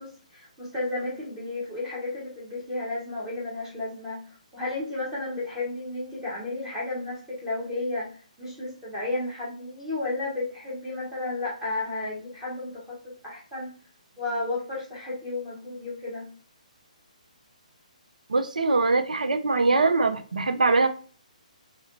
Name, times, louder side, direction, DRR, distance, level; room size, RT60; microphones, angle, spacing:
voice 1, 0.0-4.2 4.5-8.1 8.4-13.7 14.2-16.2, left 2 dB, 10° right, -8 dB, 1.2 m, -33 dB
voice 2, 18.3-20.9, right 3 dB, 75° right, 9 dB, 0.4 m, -22 dB
3.9 x 3.0 x 2.6 m, 0.41 s
figure-of-eight pair, 135°, 4 cm